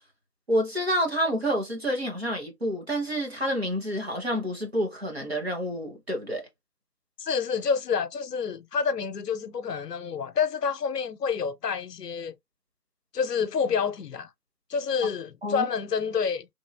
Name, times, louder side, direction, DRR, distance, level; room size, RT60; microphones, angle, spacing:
voice 1, 0.5-6.5 15.4-15.7, equal, 40° right, 0.8 m, -28 dB
voice 2, 7.2-12.3 13.1-14.3 14.7-16.5, left 6 dB, 80° left, 0.6 m, -28 dB
3.0 x 2.6 x 2.2 m
figure-of-eight pair, 170°, 48 cm